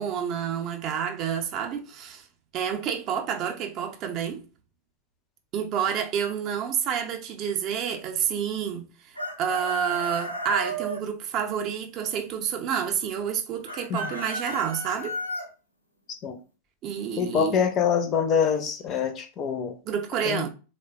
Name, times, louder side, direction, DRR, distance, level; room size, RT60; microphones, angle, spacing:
voice 1, 0.0-2.3 2.5-4.4 5.5-15.2 16.8-17.6 19.9-20.5, right 8 dB, 35° right, 0.4 m, -29 dB
Chicken rooster, 9.2-11.0 13.7-15.5, equal, 90° left, 0.6 m, -33 dB
voice 2, 17.2-19.8 20.2-20.5, left 7 dB, 30° left, 0.4 m, -25 dB
3.2 x 2.1 x 2.3 m
figure-of-eight pair, 90°, 0 cm